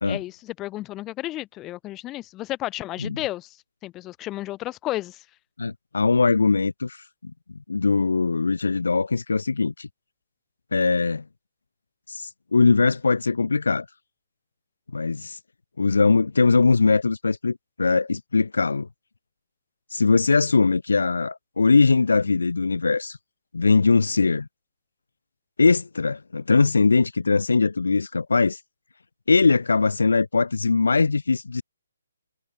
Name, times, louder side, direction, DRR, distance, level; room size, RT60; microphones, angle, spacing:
voice 1, 0.0-3.6 3.8-5.2, left 16 dB, 20° left, 4.0 m, -32 dB
voice 2, 5.6-7.3 7.7-9.9 10.7-11.2 12.1-13.9 14.9-15.4 15.8-18.9 19.9-23.2 23.5-24.5 25.6-28.6 29.3-31.6, left 4 dB, 75° left, 1.1 m, -21 dB
figure-of-eight pair, 140°, 0 cm